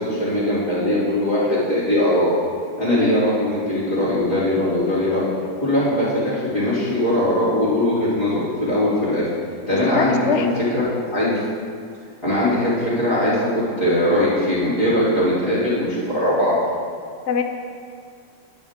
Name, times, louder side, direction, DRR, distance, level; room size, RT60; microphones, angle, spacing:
voice 1, 0.0-2.3 2.8-5.3 5.6-9.2 9.7-10.5 10.7-11.4 12.2-16.6, left 1 dB, 15° left, -13 dB, 3.0 m, -20 dB
voice 2, 2.9-3.3 9.7-10.6 17.3-17.4, left 6 dB, 65° left, 6 dB, 0.7 m, -24 dB
20.0 x 9.3 x 3.6 m, 2.3 s
omnidirectional pair, 2.1 m